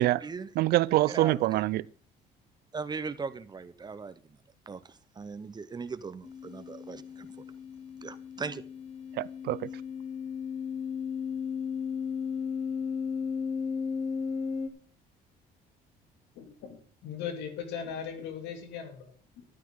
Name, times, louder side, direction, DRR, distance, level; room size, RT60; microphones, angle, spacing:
voice 1, 0.0-0.5 1.1-1.5 2.7-4.2 4.7-4.8 5.2-7.3 8.0-8.6, right 4 dB, 25° right, 0.8 m, -38 dB
voice 2, 0.6-1.8 9.2-9.7, right 16 dB, 75° right, 0.5 m, -25 dB
sound 1, 6.2-14.7, left 6 dB, 40° left, 1.7 m, -35 dB
voice 3, 16.4-19.4, left 7 dB, 80° left, 2.8 m, -39 dB
13.0 x 11.5 x 3.8 m
cardioid pair, 110°, 17 cm